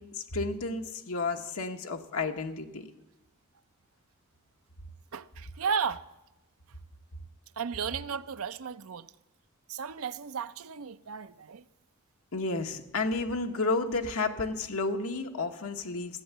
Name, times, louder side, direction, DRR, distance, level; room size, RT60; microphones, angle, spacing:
voice 1, 0.0-2.9 12.3-16.2, left 3 dB, 75° left, 1.1 m, -32 dB
voice 2, 5.1-6.0 7.6-9.1 9.7-11.6, right 6 dB, 75° right, 0.5 m, -34 dB
14.5 x 8.2 x 7.9 m
head